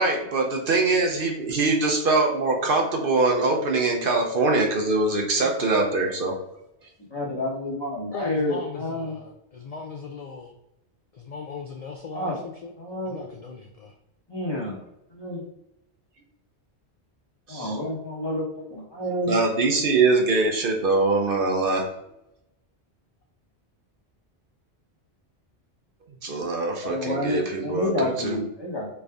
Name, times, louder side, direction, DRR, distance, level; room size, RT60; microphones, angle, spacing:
voice 1, 0.0-6.3 17.5-17.8 19.3-21.9 26.2-28.3, right 3 dB, 60° right, 1 dB, 0.8 m, -23 dB
voice 2, 5.3-5.7 7.1-9.1 12.1-12.4 12.8-13.2 14.3-14.8 15.1-15.4 17.5-19.3 26.8-28.9, left 1 dB, 25° left, -3 dB, 1.0 m, -29 dB
voice 3, 8.1-10.5 11.1-12.7 13.1-13.9, left 4 dB, 55° left, 2 dB, 0.4 m, -38 dB
3.9 x 3.4 x 3.4 m, 0.83 s
omnidirectional pair, 1.1 m